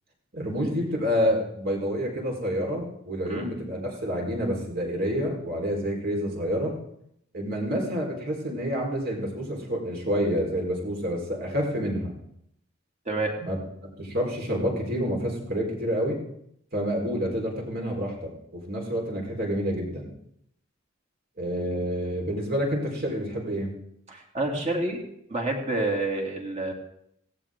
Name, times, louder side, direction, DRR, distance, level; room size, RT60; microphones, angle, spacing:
voice 1, 0.3-6.8 7.3-12.1 13.4-13.6 14.0-16.2 16.7-20.1 21.4-23.7, equal, 50° right, 0 dB, 4.5 m, -28 dB
voice 2, 24.1-25.0 25.3-26.7, right 2 dB, 35° right, 1 dB, 2.9 m, -28 dB
17.5 x 16.5 x 3.8 m, 0.72 s
head